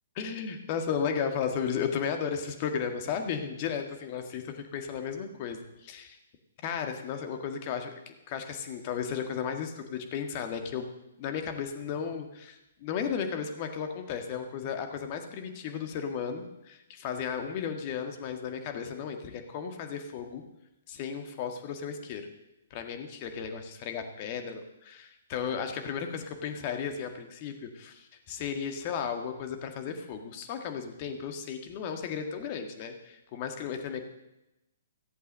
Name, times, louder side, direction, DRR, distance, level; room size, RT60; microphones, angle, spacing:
voice 1, 0.2-6.2 6.6-10.9 11.2-20.4 20.9-22.3 22.7-34.0, left 7 dB, 40° left, 5 dB, 1.8 m, -34 dB
15.0 x 8.0 x 6.4 m, 0.91 s
hypercardioid pair, 130°, 0 cm